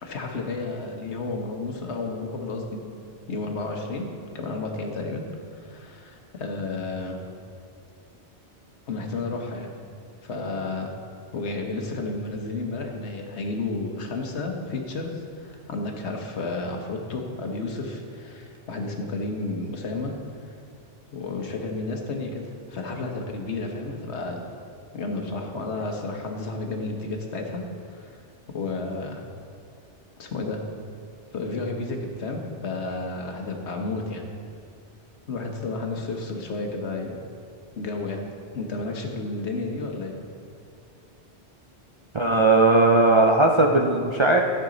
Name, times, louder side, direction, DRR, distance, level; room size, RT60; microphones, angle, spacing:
voice 1, 0.0-2.8 3.3-4.1 4.3-5.3 5.5-7.2 8.9-9.7 10.2-11.0 11.3-20.1 21.1-24.4 24.9-27.6 27.9-28.2 28.5-29.2 30.2-30.6 31.3-34.2 35.3-37.2 37.8-38.2 38.5-40.1, left 3 dB, 75° left, 2 dB, 1.4 m, -31 dB
voice 2, 42.1-44.4, right 2 dB, 45° right, 0 dB, 0.4 m, -18 dB
13.0 x 6.7 x 3.9 m, 2.4 s
omnidirectional pair, 1.1 m